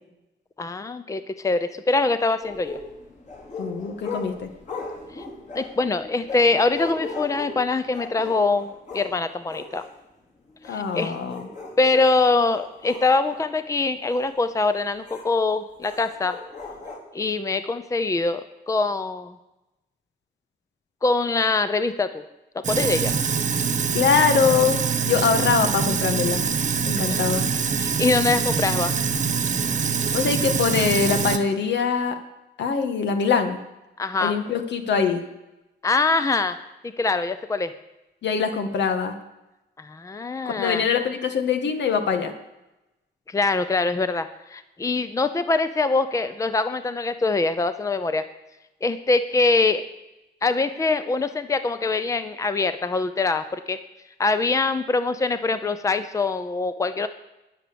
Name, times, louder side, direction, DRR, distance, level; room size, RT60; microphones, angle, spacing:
voice 1, 0.6-2.8 5.2-5.3 5.5-9.8 10.7-11.1 11.8-16.4 17.1-19.3 21.0-22.2 22.7-23.1 27.1-27.2 27.8-28.9 34.0-34.4 35.8-36.6 36.8-37.7 39.8-40.9 43.3-48.3 48.8-49.8 50.4-53.8 54.2-57.1, left 3 dB, 15° left, 11 dB, 0.7 m, -23 dB
sound 1, 2.4-9.1 9.5-9.9 10.5-12.0 12.5-13.4 14.1-14.3 15.1-15.2 15.8-17.0, left 3 dB, 40° left, 4.2 m, -37 dB
voice 2, 3.6-4.5 10.7-11.5 23.9-26.4 26.8-27.4 30.1-32.2 32.6-33.6 34.2-35.2 38.2-39.1 40.4-42.3, left 6 dB, 80° left, 7 dB, 1.8 m, -23 dB
Sink (filling or washing), 22.6-31.4, right 6 dB, 40° right, 1.2 m, -24 dB
21.0 x 7.6 x 7.0 m, 0.96 s
wide cardioid pair, 145°, 18 cm